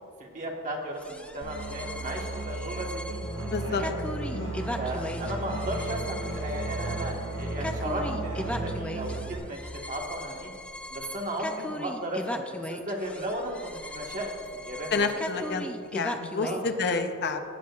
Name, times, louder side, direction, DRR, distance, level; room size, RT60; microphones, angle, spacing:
voice 1, 0.2-3.2 3.7-4.0 4.7-10.5 10.9-15.1 15.3-15.5 16.4-16.7, right 1 dB, 35° right, 0 dB, 1.4 m, -35 dB
sound 1, 1.0-16.7, left 1 dB, 5° left, 0.4 m, -38 dB
Musical instrument, 1.4-9.4, right 3 dB, 65° right, 1.5 m, -36 dB
sound 2, 3.2-8.8, equal, 30° left, 1.3 m, -38 dB
voice 2, 3.5-3.8 4.3-4.6 14.9-17.5, left 4 dB, 50° left, 7 dB, 0.6 m, -29 dB
17.5 x 8.6 x 2.4 m, 2.4 s
head